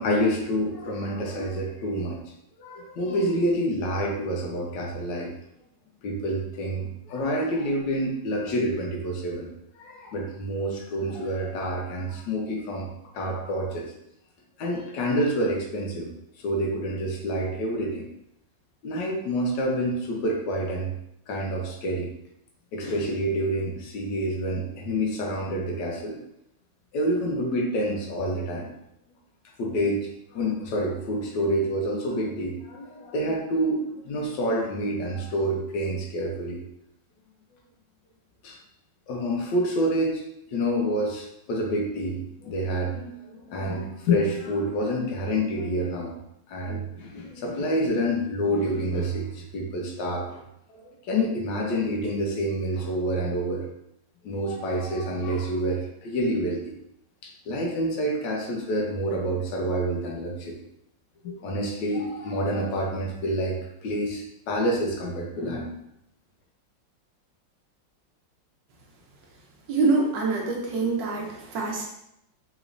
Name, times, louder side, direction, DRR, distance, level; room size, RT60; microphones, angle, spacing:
voice 1, 0.0-2.2 2.6-5.3 6.0-9.5 9.8-13.9 14.6-16.1 16.4-18.1 18.8-20.9 21.3-22.1 22.7-26.2 26.9-28.7 29.6-36.6 38.4-38.6 39.1-40.2 40.5-46.1 46.5-50.4 50.7-50.8 51.1-53.6 54.2-56.7 57.2-60.6 61.2-63.6 63.8-65.8, equal, 75° left, 0 dB, 1.4 m, -28 dB
voice 2, 69.7-71.8, right 3 dB, 80° right, -1 dB, 1.5 m, -25 dB
4.1 x 3.0 x 2.5 m, 0.80 s
omnidirectional pair, 2.0 m